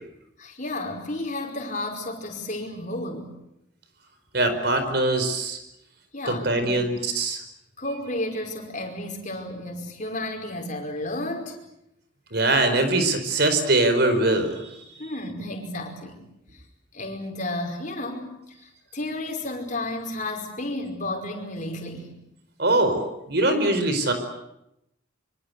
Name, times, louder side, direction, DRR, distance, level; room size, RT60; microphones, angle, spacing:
voice 1, 0.4-3.3 6.1-6.8 7.8-11.6 15.0-16.2 16.5-16.6 16.9-22.2, left 1 dB, 40° left, 3 dB, 5.1 m, -32 dB
voice 2, 4.3-5.6 6.3-7.4 12.3-14.7 22.6-24.1, right 2 dB, 55° right, 8 dB, 4.7 m, -22 dB
25.5 x 25.0 x 8.3 m, 0.84 s
head